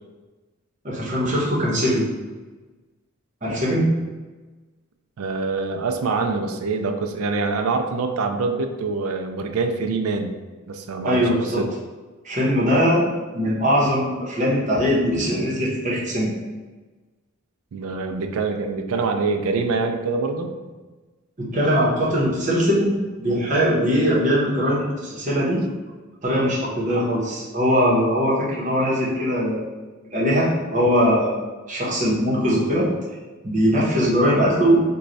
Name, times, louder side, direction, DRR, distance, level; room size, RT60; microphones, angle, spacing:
voice 1, 0.8-2.1 3.4-3.9 11.0-11.6 12.2-13.0 13.3-16.3 21.4-25.6 26.2-29.7 30.1-31.4 31.7-32.9 33.4-34.8, equal, 35° right, -6 dB, 1.0 m, -21 dB
voice 2, 5.2-10.4 10.7-11.7 17.7-20.5, right 4 dB, 80° right, 5 dB, 0.4 m, -25 dB
3.1 x 2.3 x 3.9 m, 1.3 s
head